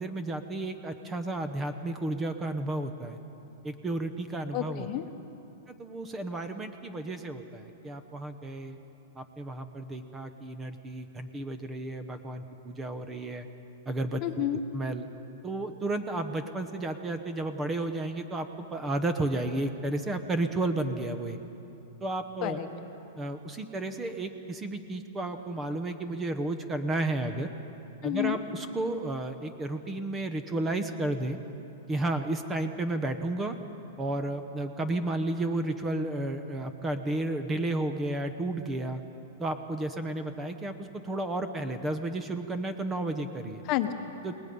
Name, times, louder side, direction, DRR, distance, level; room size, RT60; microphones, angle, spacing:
voice 1, 0.0-3.2 3.6-4.9 5.7-8.8 9.2-13.5 13.9-14.2 14.7-15.1 15.4-21.4 22.0-22.6 23.2-27.5 28.0-31.4 31.9-33.6 34.0-39.0 39.4-43.6 44.2-44.3, right 2 dB, 10° right, 9 dB, 0.9 m, -32 dB
voice 2, 4.5-5.1 14.2-14.6 22.4-22.9 28.0-28.4 43.7-44.1, left 12 dB, 35° left, 7 dB, 1.1 m, -30 dB
29.0 x 19.5 x 5.4 m, 2.9 s
supercardioid pair, 160°, 0 cm